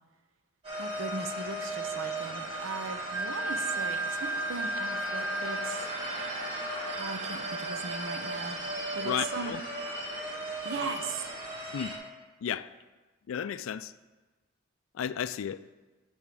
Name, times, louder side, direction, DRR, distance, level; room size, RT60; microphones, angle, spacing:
sound 1, 0.6-12.0, right 1 dB, 30° right, 2.3 m, -36 dB
voice 1, 0.8-5.9 6.9-8.6 8.9-9.5 10.6-11.3, right 4 dB, 70° right, 0.6 m, -38 dB
Wind instrument woodwind instrument, 3.1-8.9, right 2 dB, 85° right, 1.7 m, -36 dB
voice 2, 9.0-9.6 11.7-11.9 12.4-12.7 13.3-13.9 14.9-15.6, left 8 dB, 75° left, 0.3 m, -33 dB
10.5 x 3.6 x 6.8 m
head